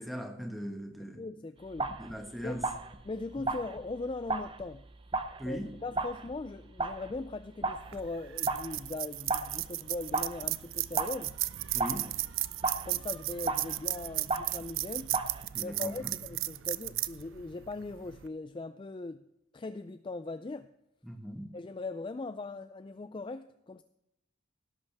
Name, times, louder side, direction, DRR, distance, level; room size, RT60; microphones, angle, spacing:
voice 1, 0.0-1.2 2.0-2.6 5.4-5.7 11.7-12.1 15.5-16.1 21.0-21.5, equal, ahead, 3 dB, 1.5 m, -39 dB
voice 2, 1.1-2.0 2.4-2.6 3.0-4.8 5.5-11.4 12.9-15.1 15.6-19.2 19.5-20.7 21.5-23.8, left 3 dB, 25° left, 11 dB, 0.3 m, -40 dB
sound 1, 1.7-8.2 8.5-14.9 15.1-15.5, right 3 dB, 25° right, 0.8 m, -37 dB
sound 2, 7.8-18.3, right 17 dB, 80° right, 0.4 m, -35 dB
18.0 x 11.0 x 3.5 m, 0.81 s
head